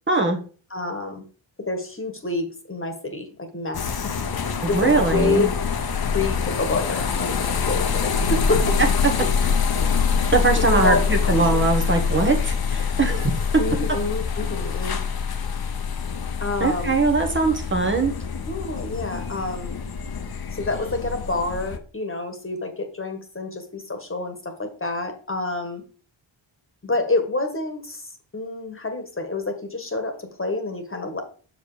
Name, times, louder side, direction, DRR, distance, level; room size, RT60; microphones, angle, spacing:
voice 1, 0.1-0.4 4.6-5.5 10.3-13.4 16.6-18.1, right 3 dB, 25° right, 2 dB, 1.3 m, -21 dB
voice 2, 0.7-1.2 1.6-5.5 6.0-8.8 9.2-9.3 10.2-11.0 11.3-11.6 13.6-15.0 16.4-16.9 18.4-19.8 20.5-25.8 26.8-31.2, left 3 dB, 25° left, 5 dB, 1.6 m, -28 dB
sound 1, 3.7-21.8, left 6 dB, 50° left, 1.0 m, -25 dB
6.7 x 4.9 x 4.9 m, 0.39 s
wide cardioid pair, 95°, 47 cm